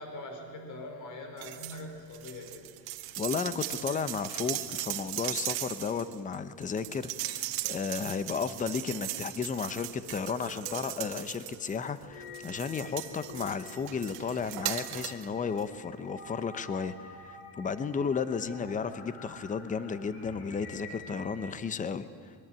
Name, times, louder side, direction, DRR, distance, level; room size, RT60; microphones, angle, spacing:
voice 1, 0.0-2.7 18.6-18.8, left 1 dB, 45° left, 4 dB, 5.0 m, -43 dB
sound 1, 1.4-1.8 2.1-11.9 12.3-15.3 15.6-15.7, right 15 dB, 60° right, 1.7 m, -38 dB
voice 2, 3.2-22.3, left 6 dB, 20° left, 13 dB, 0.9 m, -34 dB
sound 2, 9.9-21.4, left 2 dB, 60° left, 7.0 m, -48 dB
23.5 x 22.0 x 9.1 m, 2.3 s
cardioid pair, 145°, 43 cm